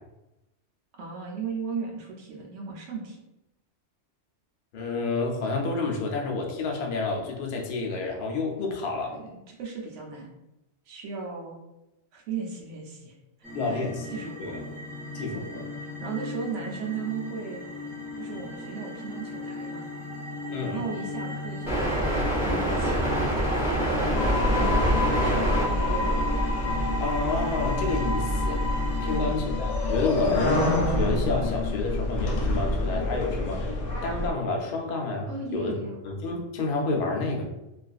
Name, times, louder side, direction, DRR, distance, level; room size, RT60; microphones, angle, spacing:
voice 1, 0.9-3.2 9.1-10.3 10.9-11.6 12.1-13.2 13.6-13.8 14.1-14.6 15.3-17.6 18.2-19.9 20.6-22.0 22.4-24.1 24.5-26.2 29.0-29.5 35.3-36.0, right 5 dB, 75° right, 0 dB, 0.9 m, -37 dB
voice 2, 4.7-9.2 13.5-14.1 14.4-14.5 15.1-15.6 20.5-20.8 27.0-28.6 29.0-33.7 34.0-35.8 36.0-37.4, left 3 dB, 60° left, 1 dB, 0.6 m, -29 dB
sound 1, 13.4-29.2, equal, ahead, 0.9 m, -30 dB
sound 2, 24.1-34.3, left 2 dB, 85° left, 1.0 m, -27 dB
2.4 x 2.3 x 2.3 m, 0.93 s
omnidirectional pair, 1.3 m